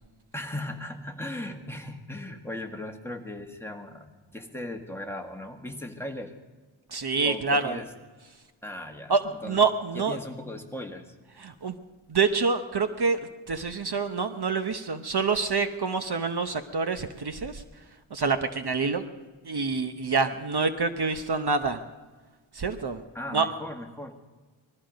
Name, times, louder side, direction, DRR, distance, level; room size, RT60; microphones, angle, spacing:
voice 1, 0.3-6.3 7.2-7.9 8.6-9.1 9.4-9.6 9.9-11.1 23.1-24.1, left 1 dB, 5° left, 2 dB, 1.6 m, -37 dB
voice 2, 6.9-7.8 9.1-10.2 11.4-11.7 12.1-13.2 13.5-17.6 18.1-19.0 19.4-21.8 22.5-23.0 23.3-23.5, right 4 dB, 50° right, 8 dB, 0.9 m, -26 dB
20.0 x 14.0 x 5.2 m, 1.3 s
wide cardioid pair, 100°, 49 cm